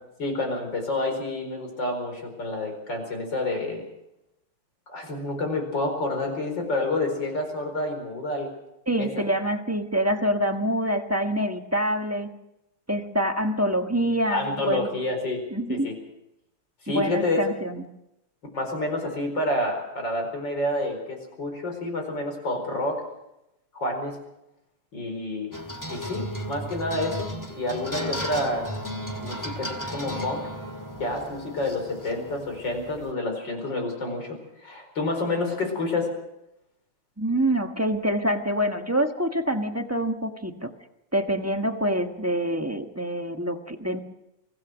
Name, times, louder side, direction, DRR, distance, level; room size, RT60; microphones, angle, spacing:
voice 1, 0.2-3.8 4.9-8.5 9.0-9.1 14.3-15.4 15.7-16.0 16.8-17.4 18.5-23.0 23.7-24.2 24.9-25.5 25.9-28.7 29.2-30.4 31.0-36.1, left 2 dB, 55° left, 4 dB, 5.3 m, -29 dB
voice 2, 8.9-12.3 12.9-14.9 15.5-15.9 16.9-17.8 37.2-40.7 41.1-44.0, right 1 dB, 10° right, 4 dB, 1.0 m, -26 dB
sound 1, 25.5-33.1, equal, 10° left, 1.7 m, -35 dB
24.5 x 16.5 x 6.3 m, 0.88 s
omnidirectional pair, 2.4 m